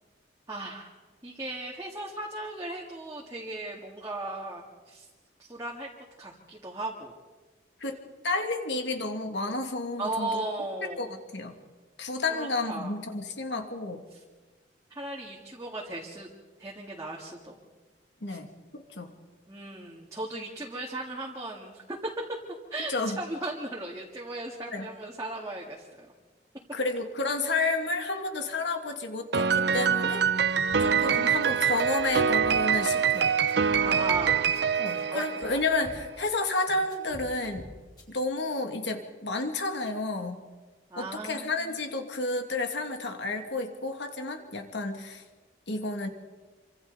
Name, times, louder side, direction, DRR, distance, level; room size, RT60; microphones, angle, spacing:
voice 1, 0.5-0.9 1.2-5.1 5.4-5.9 6.2-7.1 10.0-11.1 12.3-12.9 14.1-14.2 14.9-16.3 16.6-17.6 18.3-18.4 19.5-22.0 22.5-26.1 33.8-34.5 35.1-35.2 40.9-41.8, right 2 dB, 20° right, -3 dB, 2.0 m, -37 dB
voice 2, 8.2-10.4 10.8-11.5 12.0-14.0 18.2-19.1 22.9-23.2 24.7-24.9 26.7-30.2 30.8-33.3 34.8-37.7 38.1-40.4 41.0-45.2 45.7-46.1, left 2 dB, 70° left, 4 dB, 2.3 m, -31 dB
Piano, 29.3-35.8, right 7 dB, 65° right, 0.6 m, -25 dB
sound 1, 30.7-38.0, equal, 20° left, 5.4 m, -47 dB
28.0 x 25.5 x 4.0 m, 1.3 s
head